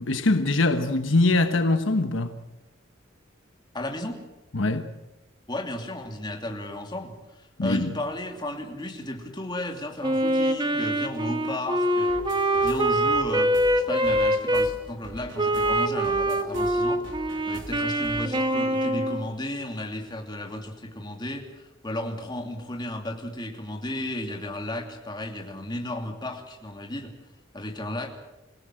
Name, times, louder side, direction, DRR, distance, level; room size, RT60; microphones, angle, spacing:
voice 1, 0.0-2.4 4.5-4.9 7.6-7.9, left 2 dB, 70° left, 1.2 m, -23 dB
voice 2, 3.7-4.2 5.5-12.2 12.6-17.0 17.5-27.1 27.5-28.1, left 1 dB, 20° left, 2.8 m, -34 dB
Wind instrument woodwind instrument, 10.0-14.7 15.4-19.3, right 1 dB, 25° right, 1.4 m, -24 dB
sound 1, 12.1-18.2, right 1 dB, 65° right, 3.6 m, -43 dB
27.0 x 17.5 x 7.8 m
head